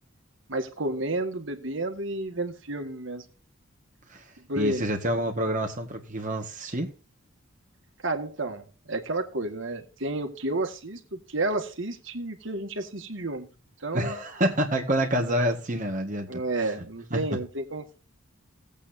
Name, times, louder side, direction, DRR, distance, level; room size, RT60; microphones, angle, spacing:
voice 1, 0.5-3.2 4.5-4.9 8.0-13.5 13.8-14.2 16.3-18.0, right 2 dB, 60° right, 1.9 m, -31 dB
voice 2, 4.1-6.9 13.9-16.7 17.1-17.2, right 1 dB, 40° right, 1.7 m, -28 dB
18.0 x 8.4 x 2.7 m
head